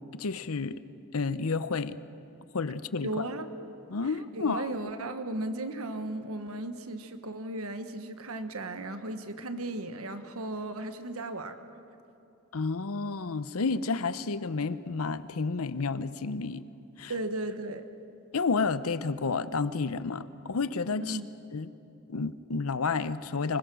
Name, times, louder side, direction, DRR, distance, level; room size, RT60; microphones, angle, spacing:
voice 1, 0.2-0.7 1.1-2.0 2.5-3.2 3.9-4.7 12.5-16.6 17.0-17.1 18.3-21.2 21.5-21.7 22.1-23.6, left 4 dB, 85° left, 14 dB, 0.7 m, -30 dB
voice 2, 3.0-3.5 4.0-11.6 17.1-17.8 21.0-21.3, right 2 dB, 85° right, 8 dB, 1.3 m, -36 dB
25.5 x 21.0 x 6.3 m, 2.7 s
head